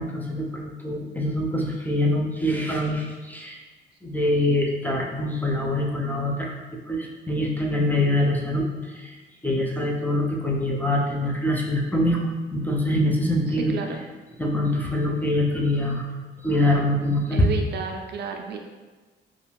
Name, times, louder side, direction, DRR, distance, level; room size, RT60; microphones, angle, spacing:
voice 1, 0.0-3.6 4.0-6.5 6.9-8.7 9.0-9.1 9.4-13.7 14.4-16.1 16.4-17.5, left 1 dB, 10° left, -1 dB, 0.4 m, -24 dB
voice 2, 13.5-14.0 17.3-18.6, right 5 dB, 55° right, 3 dB, 0.4 m, -32 dB
2.5 x 2.3 x 3.0 m, 1.2 s
cardioid pair, 90°, 20 cm